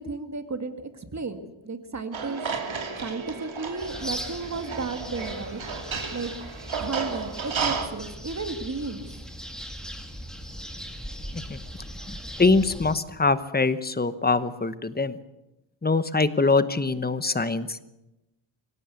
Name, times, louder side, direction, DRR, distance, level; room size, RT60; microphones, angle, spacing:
voice 1, 0.0-2.4 3.0-5.6 6.1-6.3 6.8-9.1, right 3 dB, 35° right, 8 dB, 1.9 m, -33 dB
sound 1, 2.1-7.9, right 5 dB, 70° right, 3.0 m, -33 dB
sound 2, 3.8-13.0, equal, ahead, 2.5 m, -39 dB
voice 2, 12.4-15.2 15.8-17.8, left 3 dB, 20° left, 13 dB, 1.0 m, -23 dB
25.0 x 16.5 x 8.3 m, 0.95 s
wide cardioid pair, 170°, 49 cm